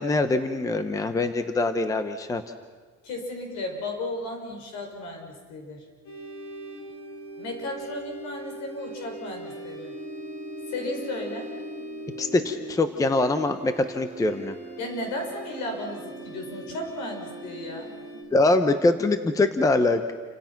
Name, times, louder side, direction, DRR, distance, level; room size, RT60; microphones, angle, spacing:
voice 1, 0.0-2.4 12.2-14.6 18.3-20.1, left 2 dB, 10° left, 9 dB, 0.8 m, -23 dB
voice 2, 3.0-5.8 7.4-9.9 10.7-11.5 14.8-17.9, left 1 dB, 70° left, 3 dB, 6.6 m, -34 dB
sound 1, 6.0-18.2, right 1 dB, 55° left, 7.8 m, -40 dB
29.0 x 26.0 x 5.9 m, 1.4 s
cardioid pair, 175°, 30 cm